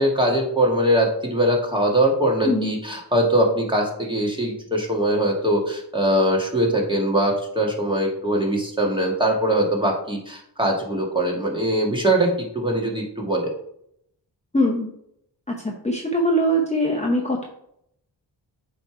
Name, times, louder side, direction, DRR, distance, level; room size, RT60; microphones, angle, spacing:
voice 1, 0.0-13.5, right 1 dB, 10° right, -1 dB, 1.5 m, -22 dB
voice 2, 14.5-14.9 15.6-17.4, equal, 15° left, 0 dB, 0.8 m, -22 dB
8.2 x 3.1 x 4.8 m, 0.73 s
wide cardioid pair, 110°, 43 cm